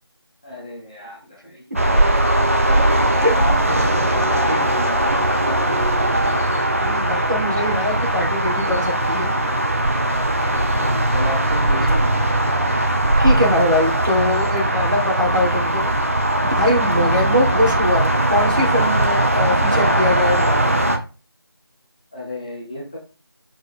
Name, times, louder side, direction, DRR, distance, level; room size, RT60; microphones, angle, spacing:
voice 1, 0.4-2.8 3.4-6.4 10.5-12.0 22.1-23.0, left 1 dB, 15° left, -5 dB, 1.2 m, -32 dB
sound 1, 1.8-21.0, right 1 dB, 35° right, 0.9 m, -19 dB
voice 2, 6.8-9.3 13.2-15.9 16.5-20.9, left 1 dB, 55° right, -2 dB, 3.7 m, -22 dB
6.5 x 6.3 x 3.6 m, 0.32 s
figure-of-eight pair, 170°, 13 cm